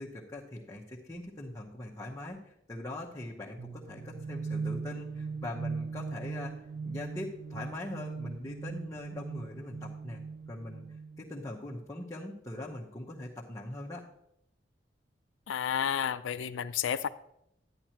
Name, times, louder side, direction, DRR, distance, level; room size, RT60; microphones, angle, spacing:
voice 1, 0.0-6.5 6.8-10.2 10.5-10.8 11.2-14.0, left 1 dB, 20° left, 1.0 m, -41 dB
sound 1, 3.6-11.3, right 4 dB, 60° right, 0.4 m, -39 dB
voice 2, 15.5-17.1, left 8 dB, 90° left, 0.4 m, -31 dB
10.5 x 10.0 x 2.9 m
head